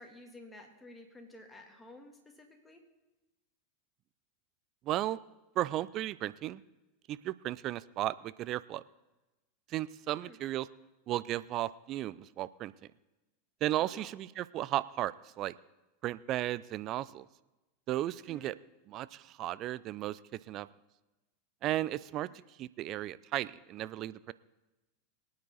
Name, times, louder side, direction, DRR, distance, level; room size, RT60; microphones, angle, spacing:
voice 1, 0.0-2.8 10.1-10.4 13.7-14.1 18.3-18.6 22.3-22.4, left 1 dB, 10° left, 2 dB, 2.8 m, -52 dB
voice 2, 4.8-5.2 5.6-6.6 7.1-8.8 9.7-10.7 11.1-12.7 13.6-15.5 16.0-17.3 17.9-18.5 18.9-20.7 21.6-22.3 22.6-24.3, right 14 dB, 45° right, 18 dB, 0.5 m, -35 dB
23.0 x 9.6 x 4.0 m, 1.0 s
hypercardioid pair, 90°, 0 cm